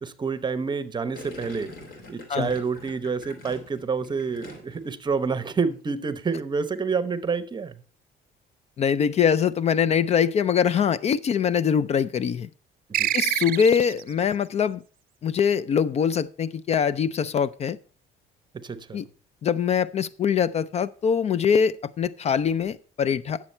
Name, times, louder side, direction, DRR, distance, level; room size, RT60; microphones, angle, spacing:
voice 1, 0.0-1.7 2.1-7.8 12.9-13.1 18.5-19.1, right 5 dB, 25° right, 0.8 m, -28 dB
Gurgling, 1.1-4.9 5.2-5.6, left 2 dB, 60° left, 3.2 m, -44 dB
voice 2, 8.8-12.5 13.1-14.8 15.2-17.8 18.9-19.1 19.4-23.4, left 7 dB, 40° left, 0.4 m, -23 dB
sound 1, 12.9-14.1, right 12 dB, 60° right, 0.6 m, -26 dB
9.8 x 7.3 x 4.3 m
cardioid pair, 110°, 17 cm